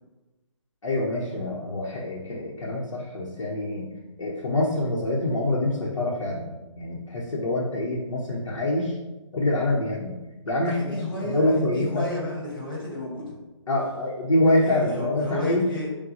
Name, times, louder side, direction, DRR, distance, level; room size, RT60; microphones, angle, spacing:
voice 1, 0.8-3.9 4.2-6.5 6.8-9.0 9.3-10.2 10.5-12.0 13.7-15.6, left 1 dB, 80° left, -5 dB, 0.9 m, -25 dB
voice 2, 10.6-13.3 14.4-15.9, left 1 dB, 45° left, -5 dB, 1.5 m, -32 dB
5.7 x 2.3 x 2.7 m, 1.1 s
hypercardioid pair, 180°, 16 cm